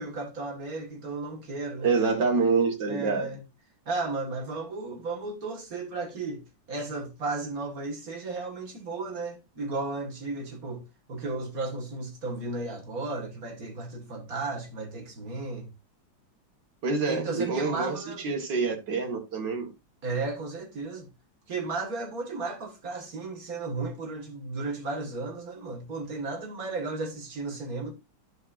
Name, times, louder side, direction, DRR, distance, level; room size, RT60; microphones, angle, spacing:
voice 1, 0.0-1.9 2.9-3.4 3.9-6.4 6.7-10.8 11.1-15.7 17.1-18.3 20.0-21.1 21.5-27.9, right 3 dB, 50° right, 2.1 m, -34 dB
voice 2, 1.8-3.3 16.8-19.7, right 4 dB, 65° right, 2.4 m, -26 dB
11.0 x 6.4 x 2.5 m
omnidirectional pair, 2.1 m